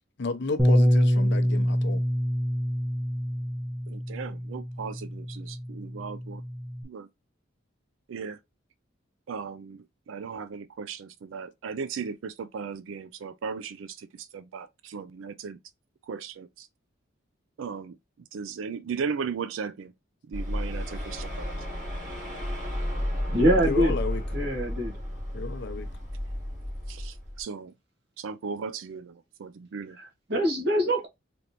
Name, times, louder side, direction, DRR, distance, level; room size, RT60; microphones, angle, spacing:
voice 1, 0.2-2.0 23.6-24.2 25.3-25.9, left 3 dB, 60° left, 0.6 m, -32 dB
Bass guitar, 0.6-6.8, equal, 10° right, 0.9 m, -26 dB
voice 2, 3.9-6.4 6.8-7.1 8.1-8.4 9.3-15.6 16.1-16.7 17.6-18.0 18.3-19.9 20.3-21.5 26.9-27.7 28.2-30.0, right 5 dB, 90° right, 0.4 m, -37 dB
sound 1, 20.3-27.4, equal, 40° right, 2.3 m, -32 dB
voice 3, 23.3-23.9 24.3-24.9 30.0-31.1, equal, 60° right, 1.8 m, -24 dB
3.8 x 3.4 x 2.8 m
head